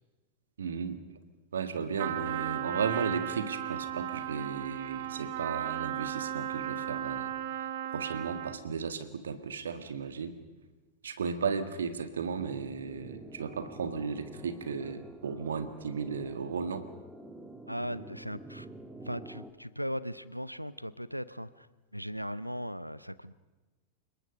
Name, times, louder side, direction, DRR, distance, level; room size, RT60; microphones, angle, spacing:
voice 1, 0.6-1.0 1.5-7.3 7.9-10.4 11.0-16.9, right 5 dB, 65° right, 10 dB, 1.6 m, -35 dB
Trumpet, 2.0-8.7, right 12 dB, 50° right, 1.0 m, -36 dB
sound 1, 12.4-19.5, right 1 dB, 5° right, 1.6 m, -48 dB
voice 2, 17.7-18.7 19.0-21.7 21.9-23.3, equal, 90° right, 18 dB, 0.6 m, -38 dB
29.5 x 19.5 x 5.4 m, 1.2 s
figure-of-eight pair, 90°, 0 cm